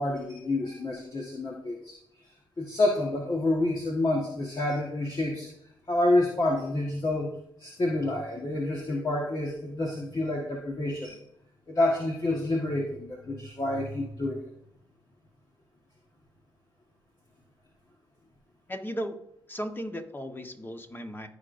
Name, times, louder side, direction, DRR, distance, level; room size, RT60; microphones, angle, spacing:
voice 1, 0.0-2.0 2.6-5.5 5.9-7.3 7.6-11.2 11.7-14.4, left 2 dB, 40° left, -1 dB, 1.6 m, -28 dB
voice 2, 18.7-19.2 19.5-21.3, equal, 20° left, 5 dB, 1.4 m, -36 dB
15.0 x 5.1 x 2.7 m, 0.73 s
supercardioid pair, 50°, 10 cm